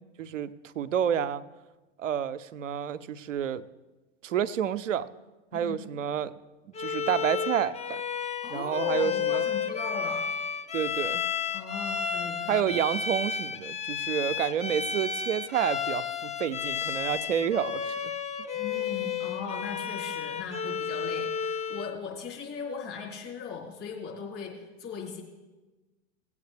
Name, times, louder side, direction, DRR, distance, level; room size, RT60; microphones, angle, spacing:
voice 1, 0.2-0.5 0.8-1.4 2.0-3.6 4.2-5.1 5.5-6.3 6.8-8.0 8.5-9.4 10.7-11.2 12.5-18.1, right 9 dB, 90° right, 13 dB, 0.6 m, -29 dB
voice 2, 5.5-5.8 8.4-10.3 11.5-12.7 18.5-25.2, left 5 dB, 40° left, -3 dB, 3.7 m, -39 dB
Bowed string instrument, 6.7-22.0, left 7 dB, 20° left, 0.6 m, -32 dB
17.5 x 8.5 x 3.3 m, 1.2 s
hypercardioid pair, 95°, 37 cm